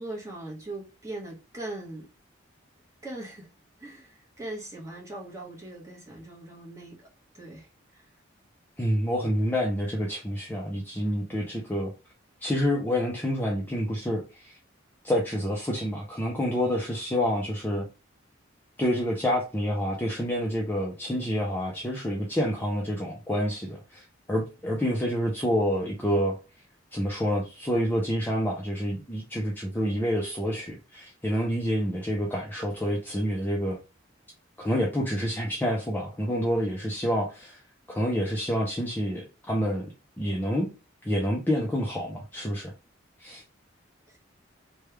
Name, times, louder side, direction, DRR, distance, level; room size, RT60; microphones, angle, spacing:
voice 1, 0.0-2.1 3.0-3.5 3.8-7.1 7.3-8.1 44.1-44.2, right 2 dB, 15° right, 1.2 m, -40 dB
voice 2, 8.8-11.9 12.4-14.6 15.0-17.9 18.8-26.4 26.9-33.8 34.6-37.6 37.9-40.7 41.0-42.7 43.2-43.4, equal, 10° left, 0.5 m, -28 dB
3.2 x 2.2 x 3.2 m
head